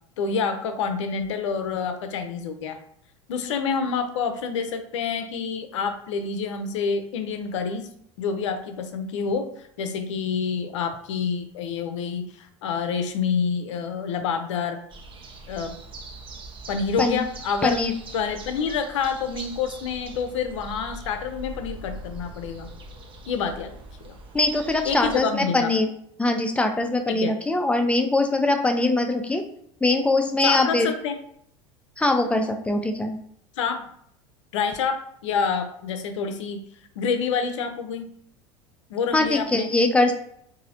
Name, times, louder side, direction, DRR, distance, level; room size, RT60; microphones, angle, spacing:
voice 1, 0.2-2.8 3.3-7.9 8.2-14.8 15.5-15.7 16.7-17.8 18.1-22.7 23.3-23.7 24.0-24.1 24.9-25.7 27.1-27.3 30.4-31.1 33.6-33.8 34.5-36.6 37.0-38.1 38.9-39.7, left 6 dB, 70° left, 7 dB, 0.6 m, -27 dB
sound 1, 14.9-25.2, right 2 dB, 35° right, 0.7 m, -41 dB
voice 2, 17.6-17.9 24.3-25.9 26.2-29.4 29.8-30.9 32.0-33.2 39.1-40.1, left 2 dB, 5° left, 4 dB, 0.5 m, -22 dB
3.9 x 2.7 x 2.7 m, 0.69 s
hypercardioid pair, 80°, 16 cm